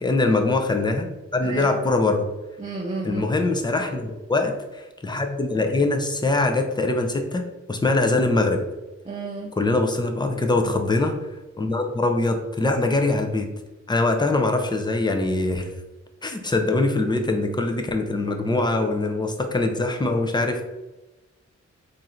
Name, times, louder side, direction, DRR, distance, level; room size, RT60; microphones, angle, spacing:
voice 1, 0.0-2.3 3.0-8.6 9.6-11.2 11.6-13.5 13.9-15.7 16.2-20.6, left 2 dB, 15° left, 4 dB, 0.6 m, -23 dB
voice 2, 1.4-1.8 2.6-3.3 9.0-9.6, right 3 dB, 25° right, -2 dB, 0.7 m, -32 dB
3.6 x 2.6 x 4.3 m, 1.1 s
cardioid pair, 70°, 29 cm